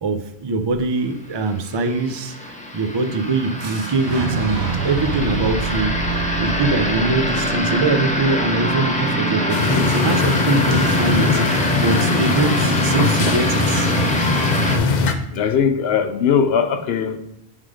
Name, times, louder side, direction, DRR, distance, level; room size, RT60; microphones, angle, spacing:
voice 1, 0.0-2.3 2.7-13.9, right 3 dB, 30° right, 6 dB, 0.5 m, -23 dB
sound 1, 1.3-14.8, right 1 dB, 10° left, 0.8 m, -24 dB
Boom, 3.6-9.5, right 2 dB, 75° right, 1.1 m, -29 dB
sound 2, 9.5-15.1, left 4 dB, 50° left, 0.7 m, -21 dB
voice 2, 15.3-17.2, left 7 dB, 70° left, 8 dB, 0.9 m, -19 dB
7.9 x 3.7 x 4.9 m, 0.80 s
omnidirectional pair, 1.1 m